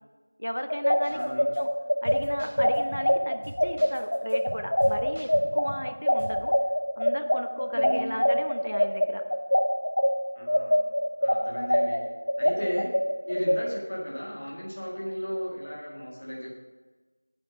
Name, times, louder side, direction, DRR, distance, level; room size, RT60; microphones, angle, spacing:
voice 1, 0.4-1.7 2.0-6.5 7.0-9.2, equal, 90° left, 7 dB, 1.0 m, -35 dB
sound 1, 0.7-10.1 10.5-13.6, equal, 50° left, 0.9 m, -23 dB
sound 2, 1.0-1.2 1.5-1.6 2.0-3.1 3.4-5.9 6.2-6.4, equal, 35° right, 4.2 m, -41 dB
voice 2, 1.1-1.5 7.7-8.2 10.3-10.8 11.2-12.0 12.4-12.9 13.2-16.5, equal, 20° left, -4 dB, 1.8 m, -35 dB
11.5 x 8.8 x 5.2 m, 1.3 s
figure-of-eight pair, 180°, 0 cm